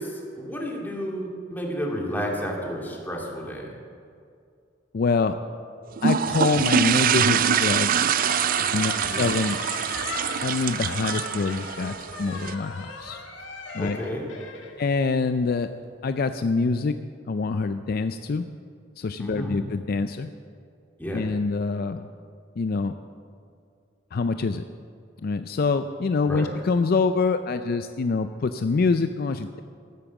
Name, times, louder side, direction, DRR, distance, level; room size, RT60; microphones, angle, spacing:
voice 1, 0.0-3.7 8.9-9.3 13.8-14.2 19.2-19.6 21.0-21.2 26.3-26.5, equal, 10° left, -2 dB, 2.3 m, -31 dB
voice 2, 4.9-5.3 6.0-7.9 8.7-9.6 10.4-13.2 13.7-14.0 14.8-15.7 16.0-17.0 17.3-18.5 19.0-20.3 21.1-22.1 22.6-22.9 24.1-24.6 25.2-29.6, left 4 dB, 55° left, 9 dB, 0.4 m, -25 dB
sound 1, 6.0-12.5, right 8 dB, 50° right, 0.4 m, -24 dB
Squeak, 7.3-15.6, left 3 dB, 75° left, 2.0 m, -38 dB
14.0 x 8.8 x 7.2 m, 2.4 s
head